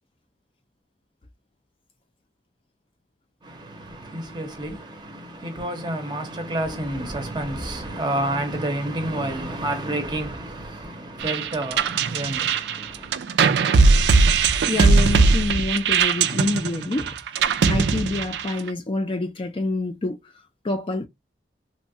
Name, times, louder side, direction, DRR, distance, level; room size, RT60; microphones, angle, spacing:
voice 1, 3.4-13.1, right 1 dB, 25° right, 0.7 m, -29 dB
sound 1, 11.2-18.7, right 4 dB, 80° right, 0.4 m, -19 dB
voice 2, 14.7-17.2 17.6-20.2 20.6-21.1, left 2 dB, 30° left, 0.4 m, -26 dB
3.0 x 2.2 x 2.7 m
head